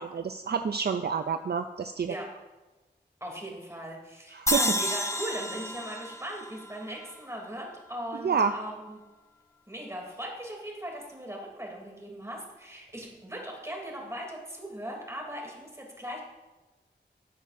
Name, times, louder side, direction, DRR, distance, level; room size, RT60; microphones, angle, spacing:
voice 1, 0.1-2.1 4.4-4.6 8.2-8.5, right 6 dB, 55° right, 8 dB, 0.4 m, -28 dB
voice 2, 3.2-9.0 9.7-16.2, right 1 dB, 15° right, -1 dB, 2.9 m, -39 dB
sound 1, 4.5-7.7, left 1 dB, 15° left, 0.9 m, -31 dB
13.0 x 8.0 x 2.6 m, 1.1 s
wide cardioid pair, 45°, 19 cm